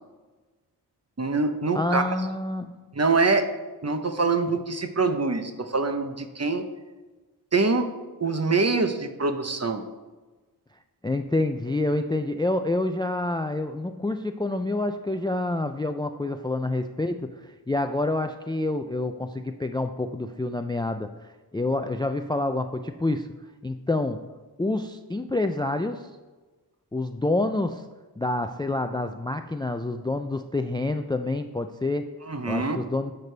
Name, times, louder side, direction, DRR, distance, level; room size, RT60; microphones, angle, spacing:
voice 1, 1.2-2.0 2.9-3.5 3.8-6.6 7.5-7.9 8.2-9.8 32.3-32.8, right 3 dB, 40° right, 7 dB, 0.9 m, -24 dB
voice 2, 1.7-2.8 11.0-21.1 21.5-23.3 23.6-24.2 24.6-26.0 26.9-27.8 28.2-32.1 32.5-33.1, left 2 dB, 10° left, 8 dB, 0.3 m, -27 dB
10.5 x 6.8 x 3.3 m, 1.3 s
wide cardioid pair, 55°, 40 cm